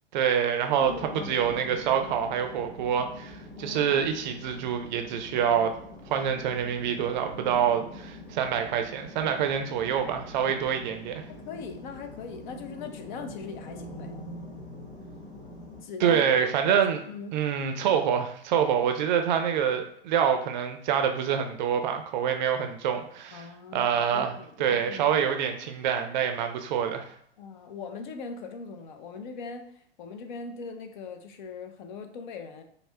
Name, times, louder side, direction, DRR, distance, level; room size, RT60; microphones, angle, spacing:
voice 1, 0.1-5.7 6.1-11.2 16.0-17.0 17.3-23.5 23.7-27.1, right 8 dB, 45° right, 6 dB, 0.5 m, -26 dB
voice 2, 0.8-1.3 3.5-4.1 10.5-10.6 11.3-14.1 15.8-16.3 16.7-16.8 17.1-17.4 23.3-25.2 27.4-32.6, left 5 dB, 50° left, 7 dB, 0.5 m, -40 dB
sound 1, 0.8-15.8, left 1 dB, 15° left, 1.0 m, -44 dB
5.2 x 2.1 x 2.2 m, 0.65 s
figure-of-eight pair, 105°, 31 cm